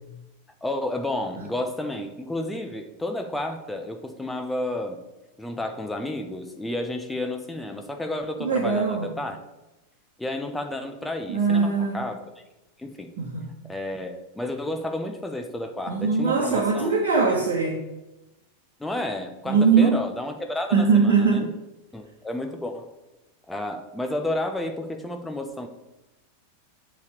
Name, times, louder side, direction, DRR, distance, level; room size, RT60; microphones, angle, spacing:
voice 1, 0.6-5.0 5.4-9.4 10.2-12.2 12.8-13.1 13.7-16.9 17.3-17.4 18.8-21.5 21.9-22.9 23.5-25.7, left 1 dB, 5° left, 4 dB, 0.8 m, -31 dB
voice 2, 8.4-9.1 11.3-12.0 13.2-13.5 15.9-17.7 19.4-20.0 20.7-21.5, right 5 dB, 55° right, -2 dB, 1.3 m, -21 dB
8.1 x 3.5 x 6.6 m, 1.0 s
figure-of-eight pair, 90°, 0 cm